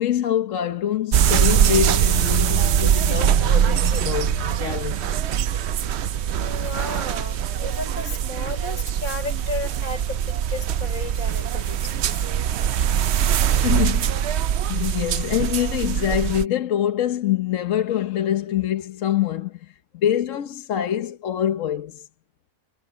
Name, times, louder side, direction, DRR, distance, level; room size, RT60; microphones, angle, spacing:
voice 1, 0.0-5.2 13.5-22.1, left 11 dB, 65° left, 1.2 m, -25 dB
sound 1, 1.1-16.5, right 9 dB, 60° right, 0.8 m, -22 dB
voice 2, 6.4-12.2, left 3 dB, 85° left, 3.8 m, -34 dB
omnidirectional pair, 1.5 m